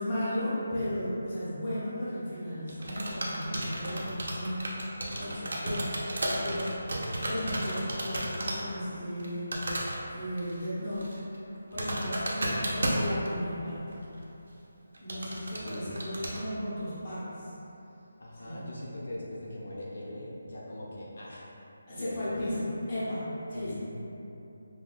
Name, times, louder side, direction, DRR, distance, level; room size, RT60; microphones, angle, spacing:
voice 1, 0.0-6.0 6.3-6.7 7.2-9.6 10.1-11.2 11.7-13.9 15.0-17.5 18.4-18.7 21.9-23.7, equal, 20° left, -12 dB, 0.8 m, -35 dB
sound 1, 2.7-8.6 8.9-9.3 9.5-10.0 10.4-10.6 10.9-13.5 13.9-14.0 14.9-16.4, right 1 dB, 65° right, 0.6 m, -33 dB
voice 2, 15.6-16.0 18.2-21.5 22.0-22.5 23.5-23.7, left 1 dB, 55° left, -6 dB, 0.5 m, -40 dB
5.8 x 2.2 x 2.3 m, 3.0 s
hypercardioid pair, 180°, 0 cm